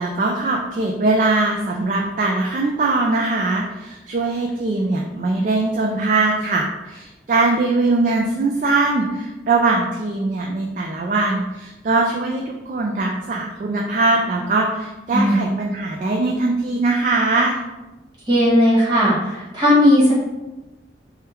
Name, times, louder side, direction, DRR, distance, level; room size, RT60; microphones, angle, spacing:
voice 1, 0.0-17.6, right 3 dB, 45° right, 0 dB, 0.3 m, -21 dB
voice 2, 18.3-20.1, equal, 25° right, -8 dB, 1.4 m, -16 dB
3.5 x 2.3 x 4.3 m, 1.1 s
head